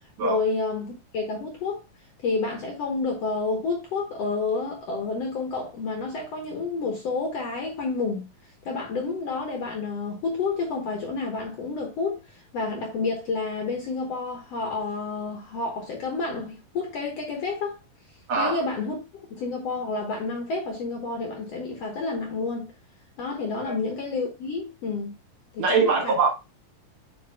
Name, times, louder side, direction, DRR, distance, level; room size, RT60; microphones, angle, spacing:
voice 1, 0.2-1.8 2.2-8.3 8.6-17.8 18.4-22.7 23.2-25.1 25.5-26.2, left 3 dB, 60° left, 1.8 m, -29 dB
voice 2, 18.3-18.6 25.6-26.3, right 4 dB, 60° right, 2.4 m, -22 dB
9.3 x 4.6 x 2.2 m
omnidirectional pair, 4.0 m